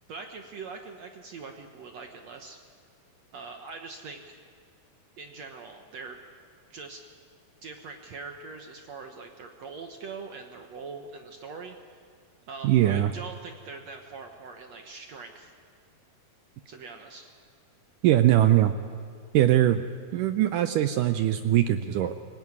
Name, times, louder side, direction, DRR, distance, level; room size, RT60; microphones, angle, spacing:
voice 1, 0.1-2.6 3.3-4.4 5.2-6.2 6.7-7.1 7.6-11.8 12.5-15.5 16.7-17.3, right 4 dB, 65° right, 4 dB, 1.7 m, -42 dB
voice 2, 12.6-13.1 18.0-18.7 19.3-19.8 20.1-22.1, right 12 dB, 80° right, 9 dB, 1.9 m, -21 dB
25.0 x 17.0 x 9.6 m, 2.1 s
omnidirectional pair, 4.5 m